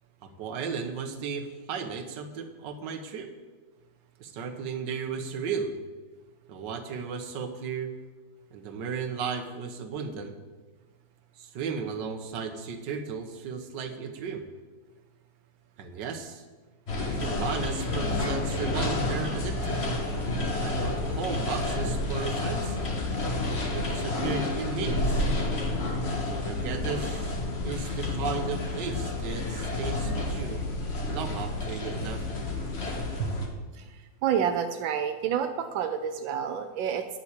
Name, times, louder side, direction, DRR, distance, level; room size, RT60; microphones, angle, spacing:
voice 1, 0.2-3.3 4.2-5.7 6.5-7.9 8.5-10.3 11.4-14.4 15.8-16.4 17.2-19.8 20.6-22.8 23.5-25.3 26.3-27.4 27.6-30.6 31.1-32.2 33.2-33.3, right 5 dB, 70° right, 7 dB, 1.7 m, -35 dB
sound 1, 16.9-33.5, left 2 dB, 35° left, 1.6 m, -30 dB
voice 2, 33.7-37.1, right 8 dB, 85° right, 7 dB, 1.4 m, -29 dB
9.7 x 7.1 x 8.1 m, 1.3 s
omnidirectional pair, 2.0 m